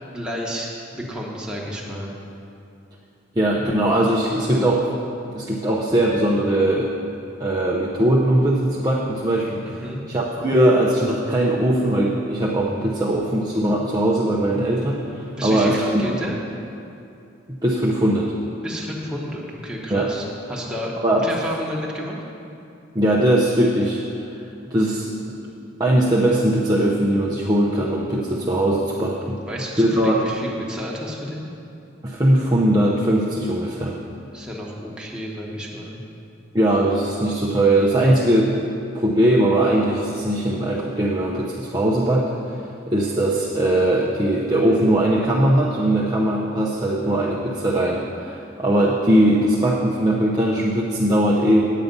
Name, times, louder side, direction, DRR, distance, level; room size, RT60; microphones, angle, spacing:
voice 1, 0.1-0.7 0.9-2.1 9.5-10.0 15.4-16.4 18.6-22.2 29.4-31.5 34.3-36.0, equal, 5° right, -4 dB, 1.2 m, -31 dB
voice 2, 3.4-4.9 5.3-6.8 7.4-16.2 17.6-18.3 19.9-20.1 21.0-21.3 22.9-24.0 24.7-25.4 25.8-29.4 29.8-30.2 32.0-34.0 36.5-38.5 38.9-42.6 42.9-51.7, right 1 dB, 20° right, -5 dB, 0.7 m, -20 dB
9.2 x 8.5 x 5.4 m, 2.6 s
head